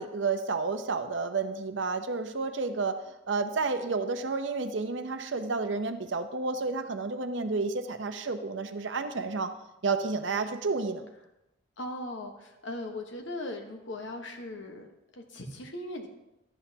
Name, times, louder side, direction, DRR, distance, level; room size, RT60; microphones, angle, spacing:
voice 1, 0.0-3.0 3.3-9.5 9.8-11.1, right 4 dB, 65° right, 8 dB, 0.7 m, -31 dB
voice 2, 11.8-14.9 15.1-16.1, left 1 dB, 65° left, 3 dB, 1.2 m, -38 dB
12.0 x 8.1 x 2.8 m, 0.91 s
head